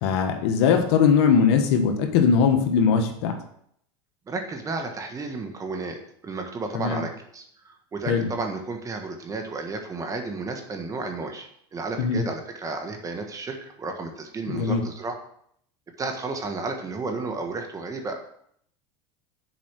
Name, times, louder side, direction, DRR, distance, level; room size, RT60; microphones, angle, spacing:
voice 1, 0.0-3.4 6.7-7.0 8.1-8.3 12.0-12.2 14.5-14.8, left 6 dB, 75° left, 6 dB, 1.3 m, -20 dB
voice 2, 4.3-15.2 16.0-18.2, right 3 dB, 25° right, 4 dB, 1.5 m, -32 dB
7.1 x 4.9 x 6.1 m, 0.68 s
supercardioid pair, 110°, 14 cm